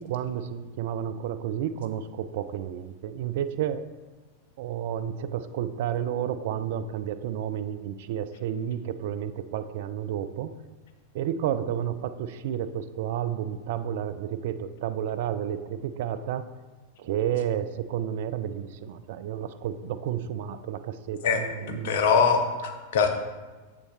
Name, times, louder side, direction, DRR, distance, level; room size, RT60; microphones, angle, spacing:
voice 1, 0.0-3.8 4.6-10.5 11.1-16.5 17.0-22.0, right 9 dB, 55° right, 12 dB, 0.4 m, -31 dB
voice 2, 21.2-23.1, left 5 dB, 55° left, 6 dB, 0.8 m, -23 dB
7.6 x 5.8 x 3.1 m, 1.3 s
figure-of-eight pair, 90°, 0 cm